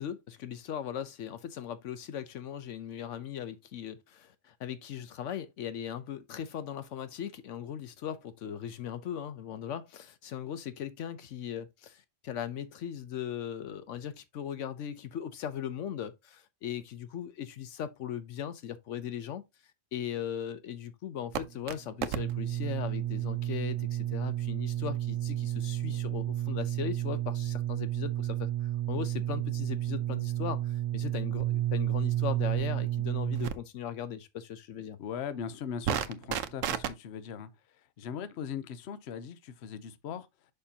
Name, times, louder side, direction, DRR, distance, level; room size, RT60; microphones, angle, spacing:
voice 1, 0.0-19.4 19.9-35.0, left 9 dB, 80° left, 1.0 m, -38 dB
sound 1, 21.3-21.7 22.0-33.5 35.9-36.9, right 12 dB, 90° right, 1.0 m, -31 dB
voice 2, 35.0-40.3, left 7 dB, 65° left, 0.9 m, -39 dB
6.6 x 5.7 x 2.7 m
omnidirectional pair, 1.3 m